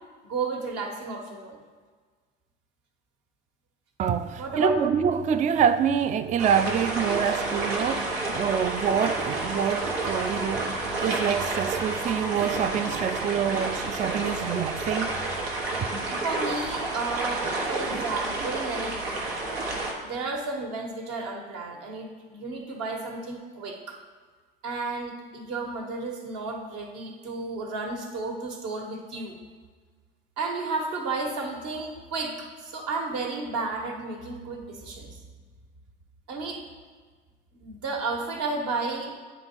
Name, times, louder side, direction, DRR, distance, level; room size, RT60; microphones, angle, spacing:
voice 1, 0.3-1.6 4.4-4.8 16.2-19.0 20.0-24.0 24.6-29.4 30.4-35.2 36.3-36.6 37.5-39.2, right 3 dB, 60° right, 1.5 m, -32 dB
voice 2, 4.0-15.2, right 7 dB, 25° right, 0.4 m, -26 dB
sound 1, 6.4-19.9, right 2 dB, 85° right, 1.2 m, -30 dB
9.3 x 3.5 x 4.5 m
hypercardioid pair, 70°, 29 cm